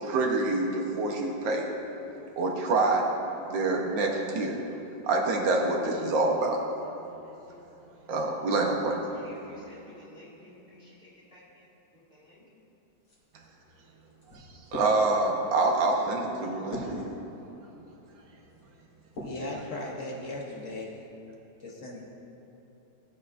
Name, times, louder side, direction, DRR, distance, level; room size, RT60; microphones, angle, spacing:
voice 1, 0.0-1.6 2.4-3.0 3.4-4.5 5.0-6.6 8.1-9.0 14.7-17.0, right 3 dB, 75° right, 0 dB, 1.8 m, -26 dB
voice 2, 9.1-11.6 12.1-12.4, left 1 dB, 30° left, -8 dB, 2.2 m, -53 dB
sound 1, 13.0-19.5 20.0-20.7, equal, 85° left, 3.4 m, -44 dB
voice 3, 19.2-21.0 21.6-22.0, left 2 dB, 50° left, -2 dB, 1.1 m, -37 dB
15.0 x 8.3 x 2.6 m, 3.0 s
omnidirectional pair, 2.0 m